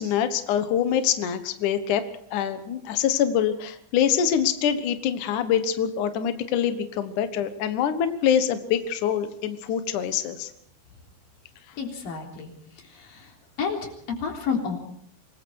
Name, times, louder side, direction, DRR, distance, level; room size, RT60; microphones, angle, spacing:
voice 1, 0.0-2.0 2.3-10.5, left 9 dB, 80° left, 9 dB, 1.8 m, -25 dB
voice 2, 11.8-12.5 12.9-13.3 13.6-13.9 14.2-14.8, left 5 dB, 45° left, 1 dB, 5.0 m, -30 dB
26.5 x 21.0 x 4.7 m, 0.66 s
omnidirectional pair, 5.7 m